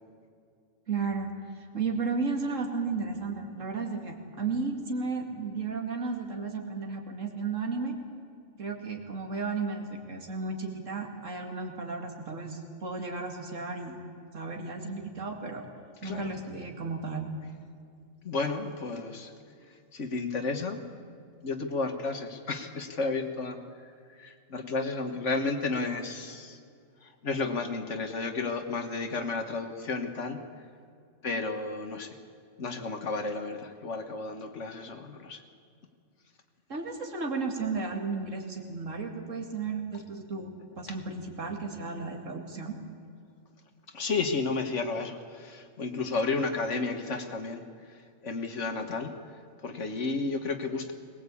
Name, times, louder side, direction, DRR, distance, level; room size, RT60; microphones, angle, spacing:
voice 1, 0.9-1.3 1.7-8.0 8.6-14.0 14.3-15.7 16.0-17.3 36.7-42.8, right 4 dB, 70° right, 3 dB, 2.7 m, -34 dB
voice 2, 18.2-19.3 19.9-20.8 21.4-23.6 24.2-26.6 27.0-30.4 31.2-32.2 32.6-35.4 43.9-47.6 48.2-49.1 49.6-50.9, left 3 dB, 65° left, 6 dB, 1.8 m, -32 dB
21.0 x 19.5 x 8.5 m, 2.3 s
omnidirectional pair, 1.3 m